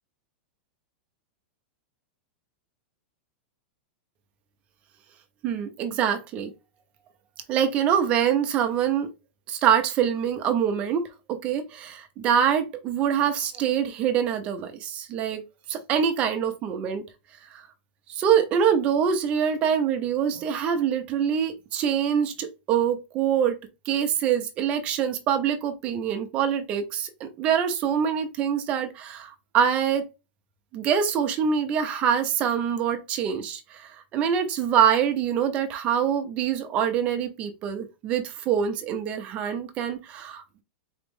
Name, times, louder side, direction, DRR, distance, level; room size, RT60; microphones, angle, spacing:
voice 1, 5.4-6.5 7.5-9.1 9.5-15.4 15.7-17.0 17.5-17.7 18.1-23.6 23.9-30.1 30.7-40.6, right 8 dB, 20° right, 0.6 m, -25 dB
4.2 x 3.0 x 3.5 m
supercardioid pair, 180°, 6 cm